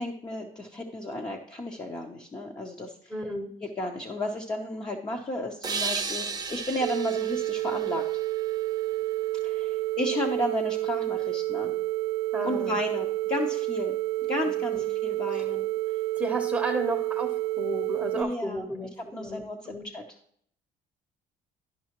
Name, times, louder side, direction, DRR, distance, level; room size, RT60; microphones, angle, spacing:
voice 1, 0.0-3.1 3.6-8.0 9.4-11.8 12.4-14.0 14.3-15.7 18.1-18.7 19.1-20.0, left 1 dB, 25° left, 1 dB, 0.9 m, -33 dB
voice 2, 3.1-3.5 12.3-12.7 14.7-14.8 15.3-15.5 16.2-17.3 17.6-19.8, right 1 dB, 5° right, 1 dB, 1.0 m, -33 dB
sound 1, 5.6-9.1, right 5 dB, 25° right, 0.6 m, -35 dB
sound 2, 6.8-18.2, right 17 dB, 80° right, 0.5 m, -29 dB
11.5 x 5.5 x 3.0 m, 0.66 s
cardioid pair, 110°, 17 cm